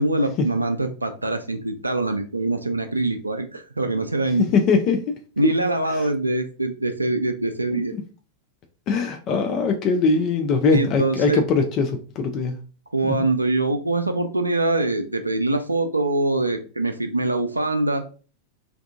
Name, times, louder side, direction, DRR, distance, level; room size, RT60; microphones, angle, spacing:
voice 1, 0.0-4.5 5.4-7.9 10.7-11.4 12.9-18.0, right 2 dB, 85° right, 7 dB, 0.3 m, -23 dB
voice 2, 4.5-5.1 5.9-6.1 7.7-8.0 8.9-12.6 13.0-13.2, left 4 dB, 35° left, 4 dB, 0.4 m, -22 dB
2.6 x 2.3 x 2.4 m, 0.37 s
figure-of-eight pair, 90°, 0 cm